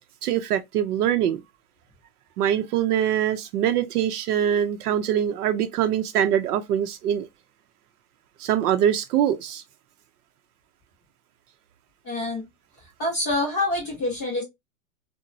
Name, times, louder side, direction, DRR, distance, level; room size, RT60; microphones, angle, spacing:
voice 1, 0.2-1.4 2.4-7.3 8.4-9.6, right 10 dB, 80° right, 0.6 m, -23 dB
voice 2, 12.0-12.5 13.0-14.4, left 2 dB, 15° left, 0.3 m, -26 dB
2.9 x 2.1 x 2.5 m
supercardioid pair, 150°, 46 cm